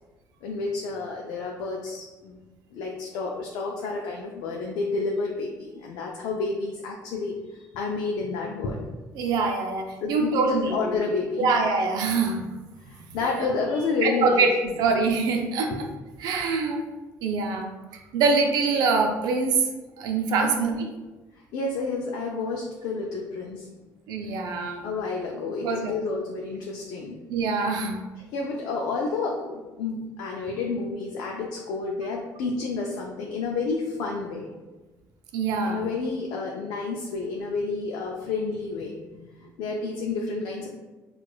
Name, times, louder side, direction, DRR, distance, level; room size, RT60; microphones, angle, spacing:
voice 1, 0.4-2.4 2.7-8.9 10.0-11.5 12.8-14.5 20.4-20.5 21.5-23.7 24.8-27.2 28.3-34.5 35.6-40.7, left 4 dB, 80° left, 0 dB, 0.4 m, -30 dB
voice 2, 9.2-11.0 11.4-12.5 14.0-14.5 14.8-15.7 16.2-16.8 17.2-17.7 18.1-19.7 20.0-20.8 24.1-24.8 25.6-25.9 27.3-28.0 35.3-35.8, right 4 dB, 75° right, 3 dB, 0.5 m, -24 dB
4.7 x 2.4 x 2.3 m, 1.2 s
cardioid pair, 110°, 7 cm